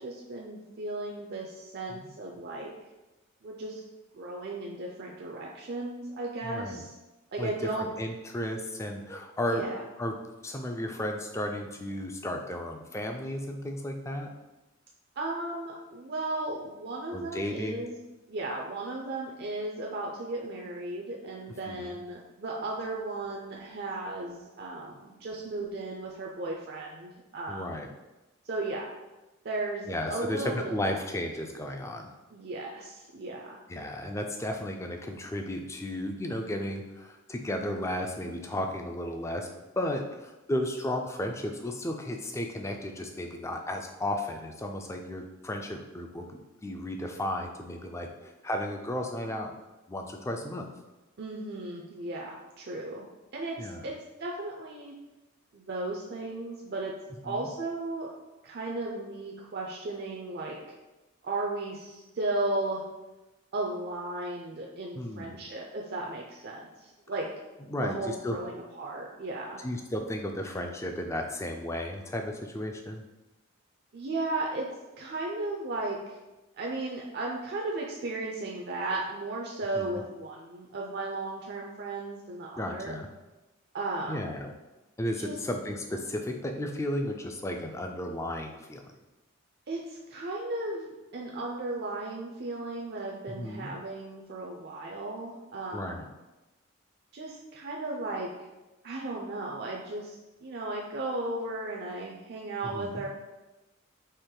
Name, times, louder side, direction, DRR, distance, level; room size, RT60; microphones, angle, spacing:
voice 1, 0.0-2.7 3.4-3.8 4.1-6.9 7.3-7.9 9.5-9.8 15.2-18.0 18.3-27.8 28.4-28.9 29.4-30.7 32.3-33.6 51.2-53.1 53.3-53.9 54.2-54.9 55.5-56.9 57.2-58.1 58.4-60.6 61.2-62.8 63.5-67.3 67.6-69.6 73.9-74.7 75.0-76.0 76.6-83.0 83.7-84.2 85.2-85.4 89.7-96.0 97.1-98.3 98.8-103.1, right 2 dB, 50° right, -1 dB, 0.5 m, -35 dB
voice 2, 6.4-6.8 7.4-7.5 7.8-9.6 10.0-10.1 10.4-14.3 17.1-17.9 21.7-22.0 27.5-27.9 29.9-32.1 33.7-39.5 39.8-49.5 49.9-50.7 53.6-53.9 57.2-57.5 65.0-65.4 67.7-68.4 69.6-73.0 79.8-80.0 82.6-83.1 84.1-84.5 85.0-88.9 93.3-93.7 95.7-96.1 102.6-103.0, left 1 dB, 15° left, 3 dB, 0.3 m, -34 dB
4.4 x 2.9 x 3.8 m, 1.1 s
head